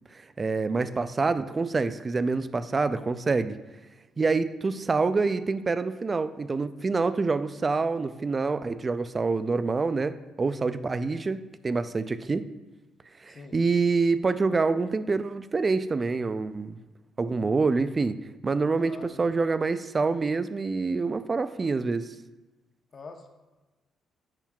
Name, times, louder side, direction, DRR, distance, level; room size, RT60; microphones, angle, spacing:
voice 1, 0.4-3.6 4.2-12.5 13.2-16.8 17.2-22.1, right 4 dB, 30° right, 13 dB, 0.4 m, -26 dB
voice 2, 18.8-19.3 22.9-23.3, left 4 dB, 45° left, 5 dB, 0.9 m, -44 dB
8.8 x 5.6 x 2.3 m, 1.2 s
cardioid pair, 90°, 0 cm